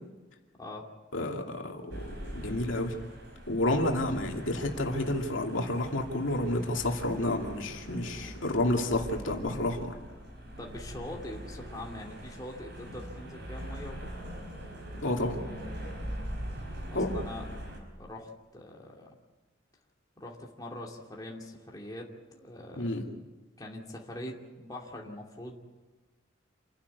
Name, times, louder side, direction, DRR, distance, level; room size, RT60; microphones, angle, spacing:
voice 1, 1.1-3.0 3.5-9.9 15.0-15.4 16.9-17.2 22.8-23.0, left 1 dB, 75° left, 1 dB, 2.6 m, -30 dB
sound 1, 1.9-17.8, equal, 55° right, 5.5 m, -42 dB
voice 2, 10.6-14.1 16.9-17.4 18.0-19.1 20.2-22.9 23.6-25.5, left 1 dB, 20° left, -1 dB, 2.7 m, -43 dB
28.0 x 11.5 x 9.6 m, 1.2 s
head